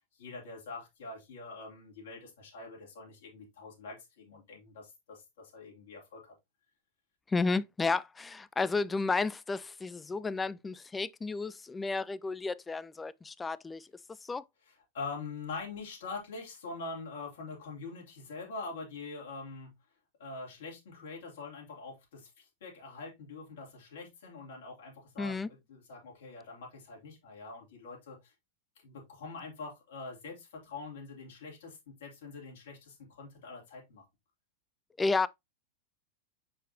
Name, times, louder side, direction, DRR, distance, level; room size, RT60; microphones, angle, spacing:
voice 1, 0.2-6.3 14.7-19.7 20.2-28.3 28.8-34.0, left 3 dB, 60° left, 2.9 m, -44 dB
voice 2, 7.3-13.9 14.2-14.4 25.2-25.5 35.0-35.3, left 3 dB, 15° left, 0.3 m, -32 dB
6.4 x 5.4 x 2.8 m
figure-of-eight pair, 90°, 0 cm